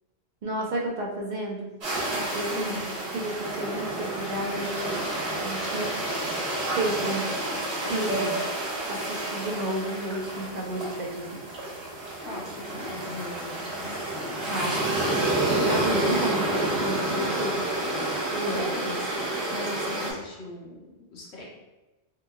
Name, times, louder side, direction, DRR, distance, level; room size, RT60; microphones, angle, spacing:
voice 1, 0.4-1.7 2.1-2.7 3.1-5.0 5.4-5.9 6.7-7.4 7.9-8.3 8.9-11.4 14.5-15.0 15.4-17.6 18.3-18.7, right 1 dB, 50° right, -2 dB, 0.7 m, -31 dB
sound 1, 1.8-20.1, right 1 dB, 75° right, 1.4 m, -29 dB
voice 2, 2.5-2.9 7.8-8.4 12.2-14.0 18.5-19.1 19.5-21.4, left 2 dB, 80° left, -3 dB, 1.1 m, -39 dB
3.8 x 2.8 x 2.3 m, 1.1 s
omnidirectional pair, 1.1 m